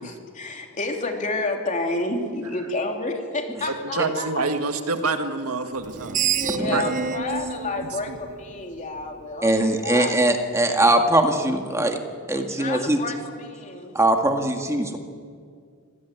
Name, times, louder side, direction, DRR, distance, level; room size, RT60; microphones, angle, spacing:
voice 1, 0.0-4.3 6.4-10.2 12.3-14.0, left 2 dB, 35° left, 2 dB, 3.2 m, -30 dB
voice 2, 3.9-6.2 6.5-6.9 8.1-8.2, right 3 dB, 75° right, 7 dB, 1.8 m, -27 dB
Screech, 5.8-9.0, right 6 dB, 35° right, 0.8 m, -28 dB
voice 3, 6.4-6.8 9.4-12.0 12.3-13.0 14.0-15.0, right 1 dB, 15° right, 4 dB, 1.9 m, -21 dB
25.5 x 17.0 x 9.3 m, 2.1 s
head